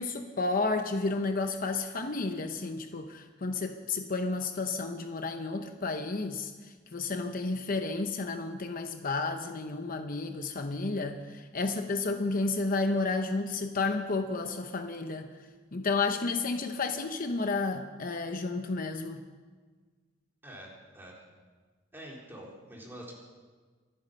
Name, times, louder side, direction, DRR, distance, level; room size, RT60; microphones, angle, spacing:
voice 1, 0.0-15.3 15.7-19.2, left 3 dB, 50° left, 6 dB, 0.8 m, -31 dB
voice 2, 20.4-21.1 21.9-23.2, right 1 dB, 10° right, -3 dB, 3.7 m, -46 dB
26.0 x 9.2 x 5.5 m, 1.5 s
head